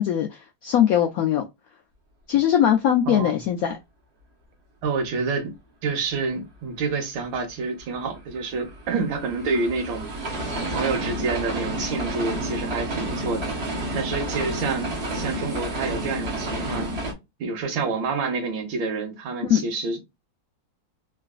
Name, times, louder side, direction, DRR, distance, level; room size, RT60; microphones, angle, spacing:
voice 1, 0.0-1.4 2.3-3.8 19.4-19.6, left 10 dB, 85° left, 0.7 m, -21 dB
voice 2, 3.1-3.4 4.8-5.5 5.8-10.1 10.7-13.5 13.9-16.9 17.4-20.0, right 4 dB, 90° right, 1.8 m, -28 dB
sound 1, 7.8-17.1, right 1 dB, 45° right, 1.0 m, -30 dB
3.8 x 2.4 x 2.2 m
omnidirectional pair, 2.1 m